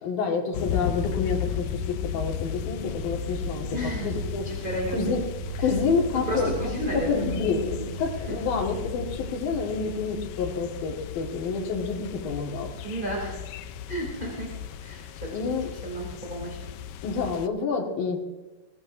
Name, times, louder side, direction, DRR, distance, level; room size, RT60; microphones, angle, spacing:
voice 1, 0.0-3.7 4.0-4.4 4.9-5.2 5.6-12.7 15.3-15.7 17.0-18.2, left 5 dB, 65° left, 0 dB, 3.5 m, -28 dB
sound 1, 0.5-17.5, left 9 dB, 85° left, 1.9 m, -35 dB
sound 2, 2.9-10.6, right 5 dB, 55° right, 1.2 m, -39 dB
voice 2, 3.7-4.2 4.4-5.1 5.6-5.7 6.2-7.3 7.6-7.9 8.3-8.4 12.8-13.4 13.9-14.5 14.8-15.4 15.7-16.6, right 1 dB, 15° right, -3 dB, 2.2 m, -33 dB
22.0 x 16.0 x 2.7 m, 1.2 s
omnidirectional pair, 4.5 m